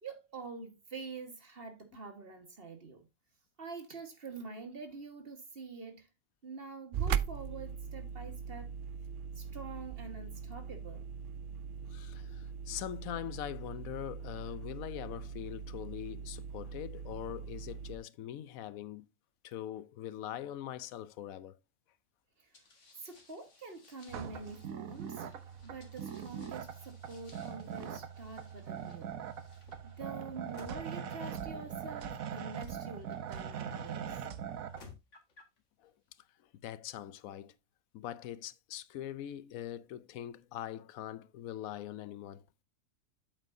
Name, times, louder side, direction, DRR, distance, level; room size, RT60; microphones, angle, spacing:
voice 1, 0.0-3.1 3.6-6.1 6.4-8.7 9.4-11.0 22.4-22.6 23.0-29.2 29.8-34.2, right 4 dB, 45° right, 1.7 m, -46 dB
sound 1, 6.9-18.0, right 7 dB, 70° right, 0.5 m, -40 dB
voice 2, 11.9-19.1 19.4-21.6 35.8-35.9 36.4-37.6 37.9-42.4, left 12 dB, 90° left, 1.1 m, -42 dB
sound 2, 22.5-33.8 34.5-35.6, left 4 dB, 60° left, 2.1 m, -60 dB
sound 3, 24.1-34.8, right 8 dB, 85° right, 1.3 m, -42 dB
8.6 x 7.5 x 2.7 m
omnidirectional pair, 1.4 m